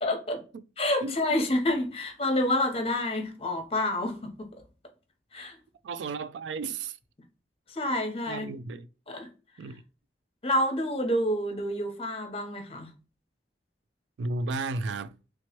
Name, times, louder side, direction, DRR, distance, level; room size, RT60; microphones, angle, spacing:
voice 1, 0.0-0.4 0.8-4.5 5.3-5.6 7.7-8.5 9.1-9.3 10.4-12.9, left 1 dB, 35° left, 0.8 m, -28 dB
voice 2, 5.8-7.0 8.3-8.9 9.6-9.8 14.2-15.2, right 3 dB, 80° right, 0.3 m, -33 dB
3.4 x 3.0 x 2.9 m
head